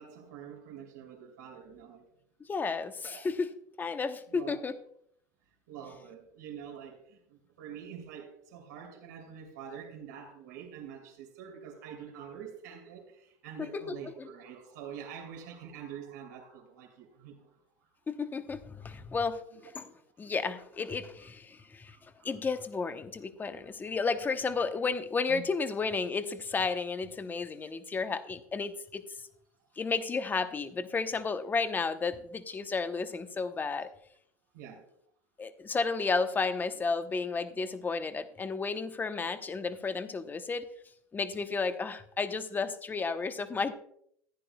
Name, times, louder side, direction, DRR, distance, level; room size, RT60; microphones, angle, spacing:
voice 1, 0.0-2.0 3.1-3.2 4.3-4.6 5.7-17.6 19.5-19.6 21.5-22.3 25.3-25.4 34.5-34.8, right 8 dB, 85° right, 2 dB, 3.0 m, -46 dB
voice 2, 2.5-3.5 3.8-4.8 13.6-14.3 18.1-19.4 19.7-19.8 20.2-22.0 22.2-29.0 29.8-33.9 35.4-40.7 41.1-43.7, left 4 dB, 20° left, 10 dB, 0.9 m, -32 dB
15.0 x 9.9 x 2.3 m, 0.69 s
supercardioid pair, 105°, 9 cm